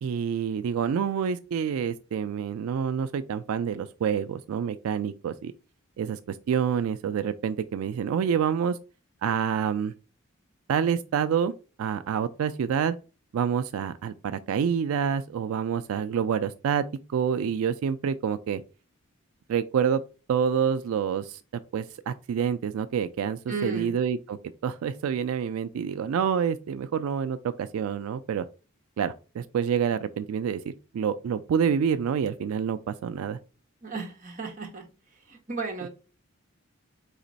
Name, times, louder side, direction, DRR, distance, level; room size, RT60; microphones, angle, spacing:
voice 1, 0.0-5.5 6.0-8.8 9.2-9.9 10.7-11.5 11.8-13.0 13.3-16.8 17.1-18.6 19.5-20.0 20.3-21.4 21.7-28.4 29.0-33.4, right 7 dB, 90° right, 0.3 m, -27 dB
voice 2, 23.5-24.0 33.8-34.8 35.3-35.9, right 3 dB, 40° right, 1.1 m, -34 dB
4.1 x 3.0 x 4.0 m
head